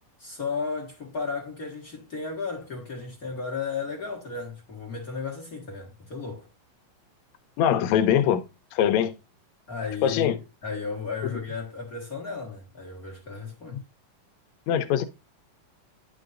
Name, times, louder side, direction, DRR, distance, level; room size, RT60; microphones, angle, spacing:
voice 1, 0.2-6.5 9.7-13.8, left 4 dB, 50° left, 1.0 m, -34 dB
voice 2, 7.6-8.4 8.7-9.1 10.0-10.4 13.7-13.8 14.7-15.0, left 9 dB, 90° left, 1.5 m, -22 dB
9.9 x 5.3 x 2.5 m
omnidirectional pair, 3.8 m